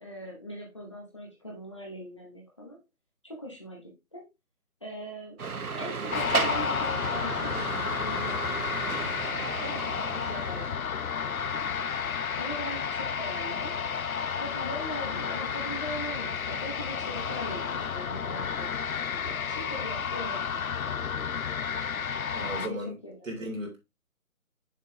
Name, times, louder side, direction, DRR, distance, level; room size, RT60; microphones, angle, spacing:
voice 1, 0.0-2.8 3.2-4.2 4.8-5.4 5.7-11.4 12.3-13.7 14.3-20.6 21.0-21.2 22.4-22.8 23.0-23.3, equal, 20° left, 1.0 m, -41 dB
sound 1, 5.4-10.7, right 4 dB, 85° right, 1.2 m, -34 dB
sound 2, 6.1-22.7, left 7 dB, 70° left, 0.8 m, -32 dB
voice 2, 22.3-23.0 23.2-23.8, equal, 60° right, 3.3 m, -35 dB
6.7 x 6.1 x 3.0 m
hypercardioid pair, 175°, 43 cm